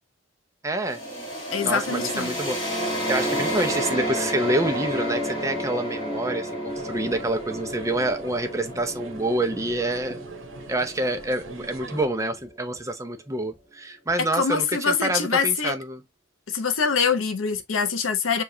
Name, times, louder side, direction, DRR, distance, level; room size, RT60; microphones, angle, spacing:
voice 1, 0.6-1.0 1.6-2.8 3.1-10.2 10.7-16.0, right 1 dB, 15° right, 0.6 m, -27 dB
sound 1, 0.9-12.5, equal, 25° left, 1.6 m, -31 dB
voice 2, 1.5-2.4 14.2-15.7 16.5-18.4, left 5 dB, 90° left, 0.8 m, -24 dB
sound 2, 6.7-12.1, right 3 dB, 85° right, 1.1 m, -43 dB
6.9 x 2.4 x 2.7 m
head